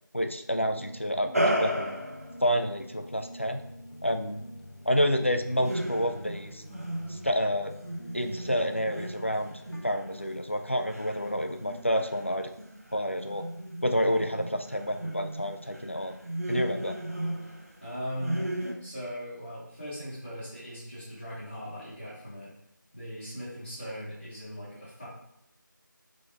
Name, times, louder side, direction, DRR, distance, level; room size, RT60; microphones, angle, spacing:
voice 1, 0.1-2.0 2.4-3.6 4.0-4.4 4.9-6.6 7.1-7.7 8.1-9.5 9.8-12.5 12.9-13.4 13.8-16.1 16.5-17.0, equal, 35° left, 6 dB, 0.3 m, -29 dB
sound 1, 0.6-10.4, left 1 dB, 80° left, 0.8 m, -47 dB
sound 2, 1.3-2.4 5.6-7.4 7.8-17.9 18.2-18.7, right 1 dB, 45° right, 0.7 m, -35 dB
voice 2, 17.8-18.4 18.8-22.5 22.9-25.1, equal, 15° left, -14 dB, 1.0 m, -39 dB
3.9 x 3.2 x 3.8 m, 0.79 s
figure-of-eight pair, 175°, 11 cm